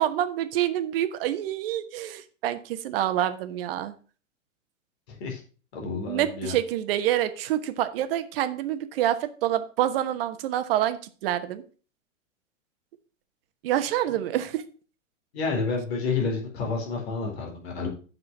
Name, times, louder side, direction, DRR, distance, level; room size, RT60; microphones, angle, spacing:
voice 1, 0.0-3.9 6.1-11.6 13.6-14.6, right 12 dB, 45° right, 11 dB, 1.2 m, -27 dB
voice 2, 5.1-5.4 5.7-6.5 15.3-17.9, left 4 dB, 55° left, 0 dB, 4.1 m, -29 dB
7.7 x 6.2 x 6.0 m, 0.38 s
figure-of-eight pair, 110°, 38 cm